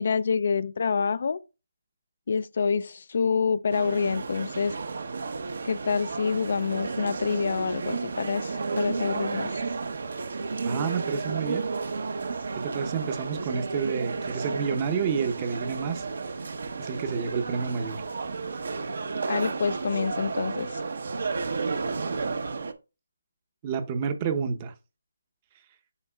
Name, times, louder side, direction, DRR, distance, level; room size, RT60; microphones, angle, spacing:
voice 1, 0.0-1.4 2.3-4.8 5.6-9.6 19.3-20.8, left 5 dB, 50° left, 0.3 m, -27 dB
sound 1, 3.7-22.7, right 4 dB, 60° right, 0.8 m, -32 dB
voice 2, 10.6-11.6 12.5-16.1 16.8-18.0 23.6-24.7, right 6 dB, 20° right, 0.7 m, -29 dB
9.6 x 5.2 x 2.2 m
figure-of-eight pair, 165°, 0 cm